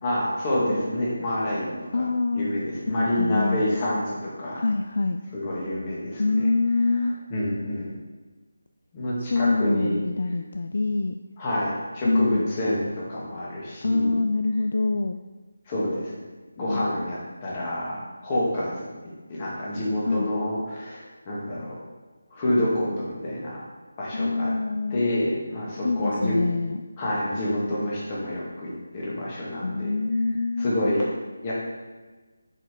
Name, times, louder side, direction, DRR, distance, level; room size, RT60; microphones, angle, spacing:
voice 1, 0.0-2.1 2.3-4.6 5.3-6.5 6.9-7.0 7.3-7.9 8.9-10.0 11.4-14.2 15.7-16.2 16.6-18.9 19.3-21.8 22.3-23.6 24.0-24.5 24.9-26.4 27.0-29.9 30.6-31.0 31.4-31.5, left 1 dB, 25° left, -6 dB, 2.0 m, -28 dB
voice 2, 1.9-2.5 2.9-3.6 4.6-5.2 6.2-7.2 9.2-11.2 12.0-12.4 13.8-15.2 16.6-17.0 20.1-20.3 24.1-25.0 25.8-26.8 29.6-31.0, left 3 dB, 55° left, 6 dB, 0.3 m, -25 dB
7.5 x 4.9 x 3.7 m, 1.3 s
figure-of-eight pair, 160°, 0 cm